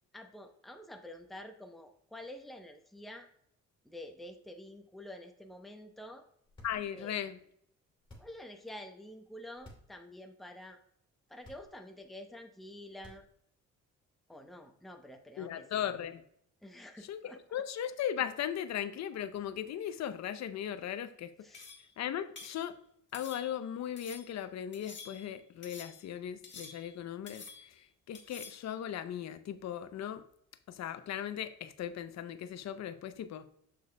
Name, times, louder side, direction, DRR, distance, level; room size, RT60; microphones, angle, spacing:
voice 1, 0.1-3.3 3.8-6.2 6.9-7.2 8.2-10.8 11.3-13.2 14.3-15.7 16.6-17.4 21.4-21.7, left 1 dB, ahead, 5 dB, 0.7 m, -48 dB
sound 1, 6.4-7.2 8.0-8.6 9.5-10.0 10.4-10.5 11.4-12.0 12.9-13.6, left 1 dB, 15° left, 2.6 m, -55 dB
voice 2, 6.6-7.4 15.4-16.2 17.1-21.6 22.0-22.8 23.1-30.2 30.7-33.5, left 10 dB, 65° left, 12 dB, 0.6 m, -38 dB
sound 2, 21.5-21.9 22.4-22.6 23.1-23.7 24.0-24.4 24.7-25.3 25.6-26.1 26.4-27.0 27.3-27.8 28.1-28.7, left 5 dB, 40° left, 1.4 m, -49 dB
6.8 x 6.4 x 2.2 m, 0.70 s
cardioid pair, 90°, 30 cm